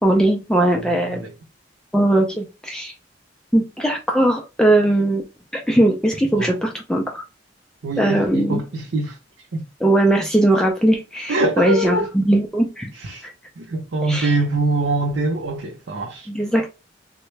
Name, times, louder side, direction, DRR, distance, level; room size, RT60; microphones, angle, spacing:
voice 1, 0.0-1.2 1.9-2.9 3.5-5.2 5.5-7.2 8.0-8.6 9.8-12.9 13.2-13.3 14.1-14.3 16.3-16.7, right 1 dB, 5° left, 0.4 m, -19 dB
voice 2, 0.8-1.3 6.3-6.5 7.8-9.2 9.5-9.7 11.3-12.1 13.0-13.3 13.6-16.3, right 2 dB, 85° right, 0.6 m, -24 dB
3.6 x 2.1 x 3.2 m
head